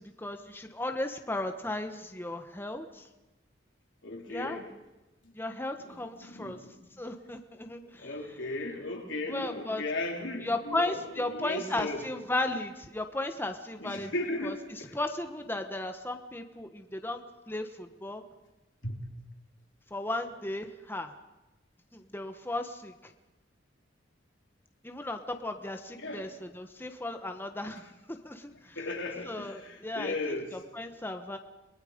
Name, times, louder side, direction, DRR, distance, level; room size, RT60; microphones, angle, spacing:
voice 1, 0.0-3.1 4.3-4.6 5.3-6.6 7.0-8.1 9.3-9.8 10.4-14.1 14.4-14.5 14.9-18.2 19.9-21.1 21.9-23.1 24.8-27.8 28.1-28.8 29.2-31.4, left 2 dB, 10° left, 6 dB, 1.2 m, -35 dB
voice 2, 4.0-4.7 5.8-6.7 7.8-12.0 13.8-14.9 18.8-19.0 26.0-26.3 28.7-30.6, left 2 dB, 85° left, 1 dB, 4.0 m, -36 dB
29.5 x 20.5 x 5.2 m, 1.0 s
head